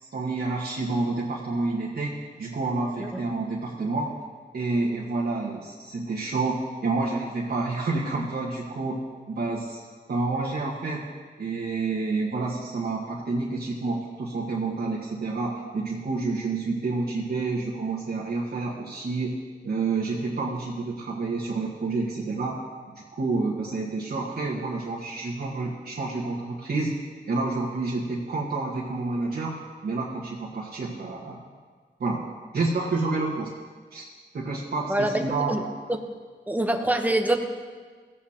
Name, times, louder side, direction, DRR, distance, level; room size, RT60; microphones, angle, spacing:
voice 1, 0.0-4.1 4.5-9.8 10.1-11.1 11.4-19.4 19.6-22.6 22.9-26.9 27.3-29.5 29.8-31.4 32.0-32.2 32.5-33.5 33.9-34.0 34.3-35.6, right 3 dB, 65° right, -6 dB, 1.5 m, -29 dB
voice 2, 34.9-35.2 35.5-35.6 35.9-36.0 36.5-37.5, right 1 dB, 10° right, 5 dB, 0.9 m, -24 dB
16.5 x 8.6 x 2.9 m, 1.5 s
wide cardioid pair, 90°, 17 cm